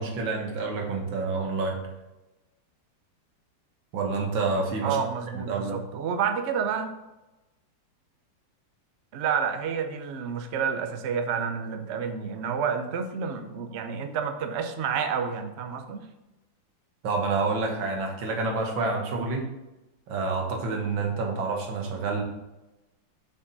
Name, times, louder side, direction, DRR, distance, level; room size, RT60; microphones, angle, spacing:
voice 1, 0.0-1.8 3.9-5.0 5.3-5.8 17.0-19.5 20.1-22.2, right 3 dB, 90° right, 1 dB, 2.0 m, -28 dB
voice 2, 4.8-6.9 9.1-16.1, right 7 dB, 60° right, 6 dB, 0.7 m, -29 dB
6.5 x 5.7 x 4.0 m, 1.0 s
omnidirectional pair, 2.0 m